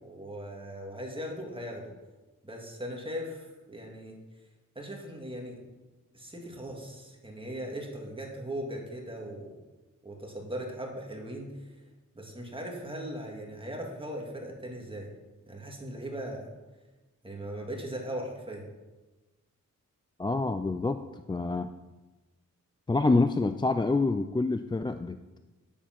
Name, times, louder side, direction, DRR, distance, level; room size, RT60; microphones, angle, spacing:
voice 1, 0.0-1.9 2.4-4.1 4.8-5.6 6.1-9.5 10.0-11.7 12.2-15.1 15.5-16.5 17.2-18.7, equal, 15° right, 0 dB, 2.0 m, -39 dB
voice 2, 20.2-21.7 22.9-25.4, left 3 dB, 15° left, 9 dB, 0.3 m, -27 dB
10.5 x 7.2 x 5.8 m, 1.2 s
wide cardioid pair, 115°, 31 cm